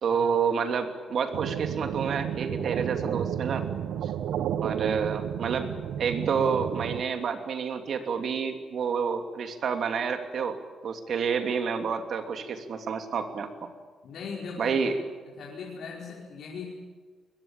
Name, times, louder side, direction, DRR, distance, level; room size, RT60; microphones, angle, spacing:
voice 1, 0.0-3.7 4.0-4.1 4.6-5.7 6.0-10.6 10.8-13.7 14.6-15.0, right 6 dB, 60° right, 7 dB, 2.8 m, -29 dB
sound 1, 1.3-7.0, right 9 dB, 80° right, 0.9 m, -31 dB
voice 2, 14.0-14.8 15.4-16.7, left 5 dB, 65° left, -2 dB, 4.8 m, -39 dB
22.0 x 22.0 x 8.9 m, 1.5 s
cardioid pair, 130°, 0 cm